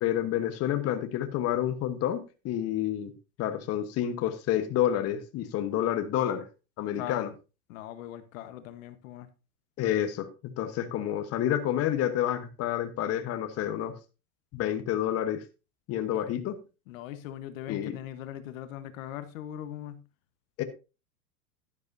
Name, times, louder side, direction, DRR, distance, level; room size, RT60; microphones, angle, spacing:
voice 1, 0.0-3.1 3.4-6.4 6.8-7.3 9.8-13.9 14.5-15.4 15.9-16.5 17.7-18.0 20.6-20.7, left 11 dB, 30° left, 1.2 m, -29 dB
voice 2, 6.9-7.3 7.7-9.3 16.1-16.5 16.9-20.0, left 11 dB, 60° left, 1.3 m, -40 dB
11.5 x 11.0 x 2.7 m
hypercardioid pair, 125°, 45 cm